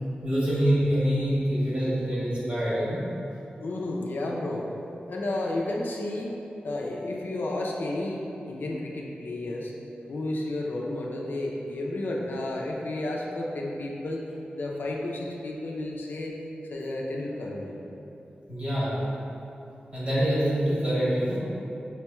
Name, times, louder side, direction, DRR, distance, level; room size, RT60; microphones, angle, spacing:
voice 1, 0.2-3.0 18.5-19.0 19.9-21.4, equal, 40° right, -10 dB, 1.4 m, -25 dB
voice 2, 3.6-4.7 5.1-6.3 6.6-8.2 8.5-9.7 10.1-14.2 14.6-16.3 16.7-17.8, left 2 dB, 80° left, -2 dB, 0.5 m, -32 dB
5.7 x 3.0 x 2.2 m, 3.0 s
wide cardioid pair, 120°, 3 cm